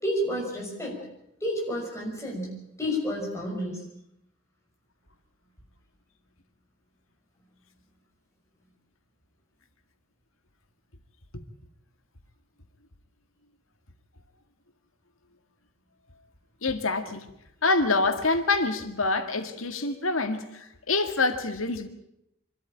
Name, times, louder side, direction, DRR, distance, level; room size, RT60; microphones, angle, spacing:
voice 1, 0.0-1.0 1.4-3.8, equal, 15° left, 6.1 m, -30 dB
voice 2, 16.6-17.3 17.6-21.9, left 3 dB, 80° left, 1.9 m, -26 dB
25.0 x 13.5 x 8.8 m
head